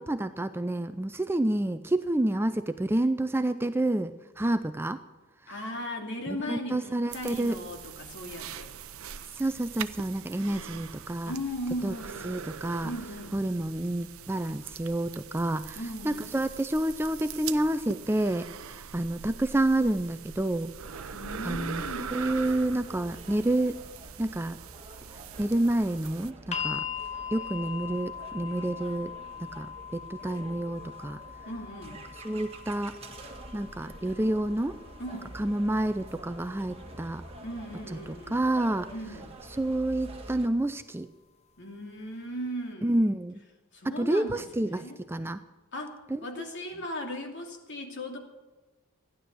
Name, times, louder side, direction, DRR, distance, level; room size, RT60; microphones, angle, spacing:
voice 1, 0.0-5.0 6.3-7.6 9.3-11.3 11.8-11.9 12.2-12.9 13.3-20.7 21.4-23.8 24.2-24.6 25.1-26.8 27.3-29.1 29.4-31.2 32.2-33.0 33.5-34.8 35.3-37.2 38.1-38.9 39.6-41.1 42.8-43.4 43.8-44.8 45.1-45.4 46.1-46.4, right 1 dB, 10° right, 10 dB, 0.4 m, -29 dB
voice 2, 5.5-8.7 11.2-12.3 12.8-13.4 15.7-16.3 21.1-22.1 31.5-32.0 35.0-35.3 37.4-38.4 38.9-39.3 41.6-42.9 43.7-45.0 45.7-48.2, equal, 55° left, 2 dB, 2.7 m, -37 dB
sound 1, 7.1-26.3, right 7 dB, 70° right, 0.7 m, -42 dB
sound 2, 20.8-40.5, right 1 dB, 30° right, 1.6 m, -48 dB
sound 3, 26.5-38.6 39.7-39.8, left 8 dB, 30° left, 0.8 m, -42 dB
15.0 x 11.0 x 7.7 m, 1.2 s
head